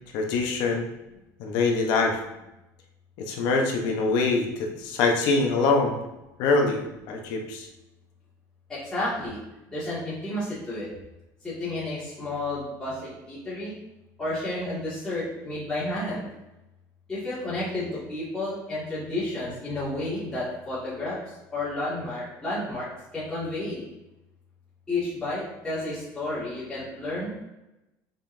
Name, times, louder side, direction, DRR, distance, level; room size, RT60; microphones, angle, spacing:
voice 1, 0.1-0.8 1.4-2.2 3.2-6.0 6.4-7.7, left 3 dB, 65° left, 2 dB, 1.1 m, -24 dB
voice 2, 8.7-9.4 9.7-10.9 11.4-13.7 14.2-16.3 17.1-21.2 21.5-23.9 24.9-27.4, left 2 dB, 10° left, -12 dB, 2.4 m, -31 dB
7.2 x 5.5 x 2.8 m, 0.95 s
cardioid pair, 165°, 8 cm